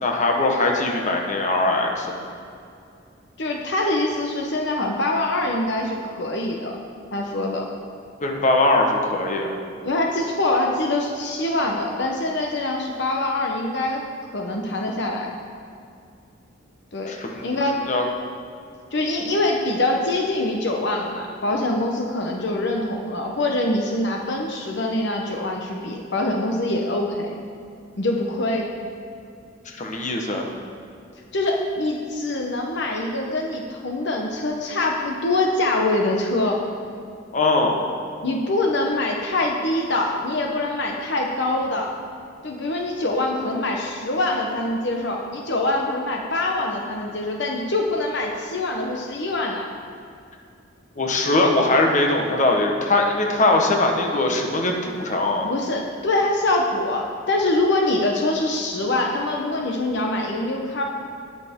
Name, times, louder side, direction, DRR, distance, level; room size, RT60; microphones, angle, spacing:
voice 1, 0.0-2.2 8.2-9.5 17.1-17.5 17.9-18.0 29.6-30.5 37.3-37.9 51.0-55.5, left 2 dB, 40° left, 1 dB, 1.3 m, -21 dB
voice 2, 3.4-6.8 7.1-7.7 9.8-14.0 14.3-15.3 16.9-17.1 17.4-17.8 18.9-27.4 28.0-28.7 31.3-36.6 38.2-41.9 42.4-49.7 55.4-60.8, left 2 dB, 65° left, 1 dB, 1.0 m, -24 dB
19.5 x 6.7 x 3.7 m, 2.5 s
head